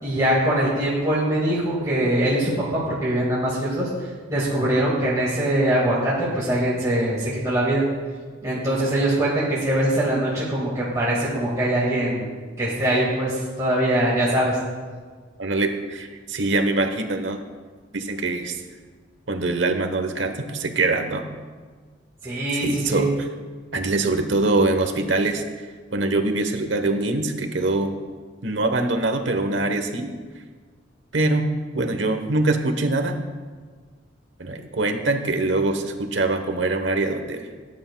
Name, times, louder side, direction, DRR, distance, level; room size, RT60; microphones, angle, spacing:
voice 1, 0.0-3.9 4.3-7.8 8.4-12.3 12.6-14.6 22.2-23.1, right 1 dB, 20° right, -7 dB, 1.8 m, -22 dB
voice 2, 15.4-17.4 17.9-18.6 19.3-21.2 22.5-23.3 23.7-25.4 25.9-27.9 28.4-30.1 31.1-31.5 31.7-33.2 34.4-37.5, right 2 dB, 65° right, 6 dB, 1.0 m, -23 dB
18.5 x 9.6 x 2.3 m, 1.5 s
head